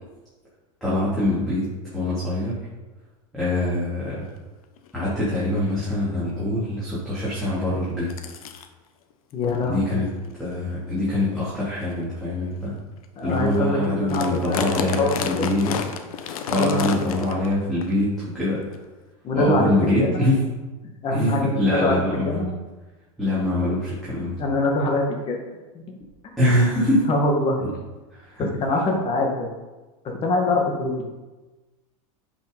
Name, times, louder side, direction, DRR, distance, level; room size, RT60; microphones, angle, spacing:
voice 1, 0.8-2.6 3.3-4.3 4.9-8.1 9.6-10.1 10.4-12.8 13.2-15.8 16.2-18.6 19.3-20.4 21.1-22.4 23.2-24.4 26.4-27.1 27.6-27.7 28.1-28.5, left 1 dB, ahead, -11 dB, 3.5 m, -24 dB
sound 1, 4.2-4.3 4.8-5.0 5.6-5.7 6.0-6.3 7.4-7.5 8.1-8.7 9.4-9.6 10.2-10.4 11.0-11.1 11.8-11.9 12.5-12.6 13.0-13.1 13.3-13.6 13.8-17.5 17.8-17.9 18.7-18.8, left 7 dB, 80° left, 1.1 m, -30 dB
voice 2, 9.3-10.0 13.2-14.7 15.0-15.4 16.6-16.9 19.2-20.3 21.0-22.5 24.4-25.4 25.7-25.8 27.1-27.6 28.6-29.5 30.0-31.0, left 2 dB, 30° left, 0 dB, 2.0 m, -24 dB
10.0 x 6.1 x 5.6 m, 1.2 s
supercardioid pair, 130°, 18 cm